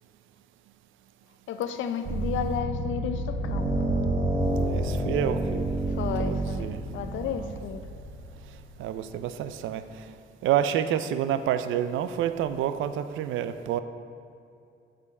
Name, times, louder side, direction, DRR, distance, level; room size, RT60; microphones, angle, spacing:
voice 1, 1.5-3.7 5.9-7.8, left 8 dB, 75° left, 9 dB, 0.5 m, -32 dB
sound 1, 2.0-8.6, right 1 dB, 60° right, 1.0 m, -29 dB
voice 2, 4.6-5.7 6.2-6.8 7.4-7.5 8.8-9.8 10.4-13.8, right 10 dB, 80° right, 11 dB, 0.4 m, -28 dB
6.8 x 5.0 x 4.8 m, 2.6 s
cardioid pair, 90°, 20 cm